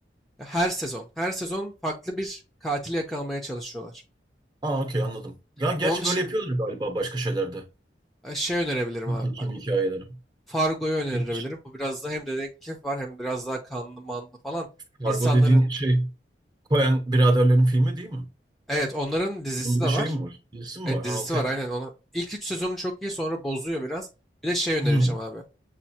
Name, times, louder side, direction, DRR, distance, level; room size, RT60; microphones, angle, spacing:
voice 1, 0.4-3.9 5.8-6.3 8.2-9.5 10.5-14.7 15.1-15.6 18.7-20.1 20.8-24.1 24.4-25.4, right 1 dB, ahead, 0.6 m, -29 dB
voice 2, 4.6-7.7 9.1-10.1 11.1-11.4 15.0-16.1 16.7-18.3 19.6-21.4 24.8-25.2, right 1 dB, 25° right, 0.9 m, -24 dB
7.4 x 2.5 x 2.8 m
head